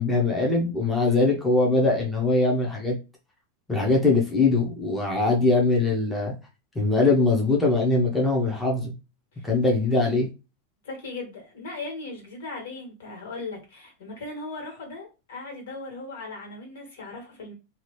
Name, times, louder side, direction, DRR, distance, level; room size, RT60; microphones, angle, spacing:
voice 1, 0.0-3.0 3.7-6.3 6.7-8.9 9.4-10.3, left 3 dB, 5° left, 0.7 m, -22 dB
voice 2, 10.8-17.5, left 3 dB, 80° left, 1.7 m, -38 dB
2.8 x 2.4 x 3.1 m
supercardioid pair, 165°, 0 cm